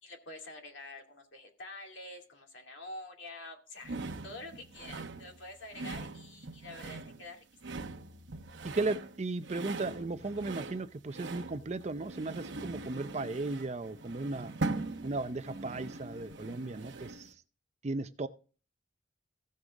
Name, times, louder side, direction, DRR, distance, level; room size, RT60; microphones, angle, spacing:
voice 1, 0.0-7.4, left 2 dB, 70° left, 2 dB, 2.5 m, -47 dB
sound 1, 3.8-17.3, right 3 dB, 65° right, 1.0 m, -41 dB
voice 2, 8.6-14.5 15.0-17.3 17.8-18.3, right 3 dB, 35° right, 12 dB, 0.5 m, -36 dB
16.0 x 6.6 x 3.6 m, 0.37 s
head